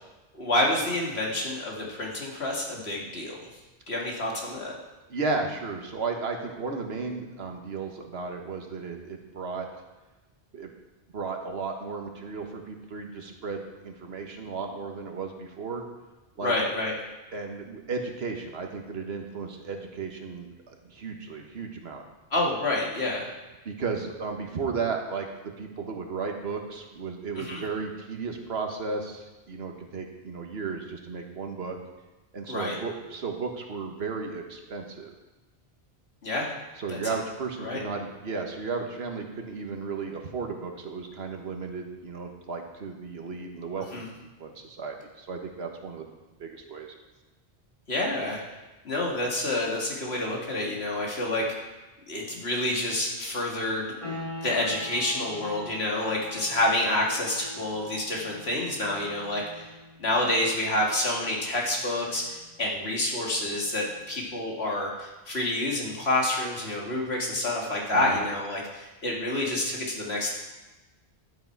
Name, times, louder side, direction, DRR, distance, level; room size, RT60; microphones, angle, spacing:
voice 1, 0.3-3.4 3.9-4.7 16.4-16.9 22.3-23.3 27.4-27.6 32.5-32.8 36.2-36.5 36.9-37.2 37.6-37.8 43.9-44.1 47.9-48.4 48.8-51.5 52.1-59.7 60.0-70.3, left 1 dB, 80° left, -2 dB, 2.4 m, -28 dB
voice 2, 5.1-9.7 10.5-10.7 11.1-15.8 16.4-16.5 17.3-22.0 23.6-31.8 32.3-35.1 36.8-44.1 44.4-46.1 46.4-46.9 67.9-68.2, right 4 dB, 75° right, 3 dB, 1.5 m, -34 dB
sound 1, 54.0-64.5, left 1 dB, 35° left, 3.0 m, -44 dB
12.0 x 8.0 x 4.7 m, 1.1 s
omnidirectional pair, 1.1 m